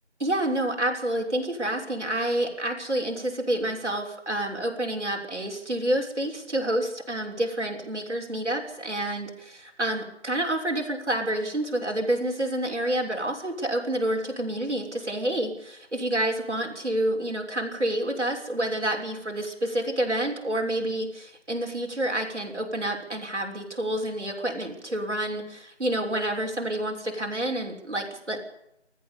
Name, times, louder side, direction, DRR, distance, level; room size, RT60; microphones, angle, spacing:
voice 1, 0.2-28.4, right 1 dB, 70° right, 0 dB, 6.5 m, -28 dB
25.5 x 14.5 x 8.7 m, 0.81 s
figure-of-eight pair, 165°, 36 cm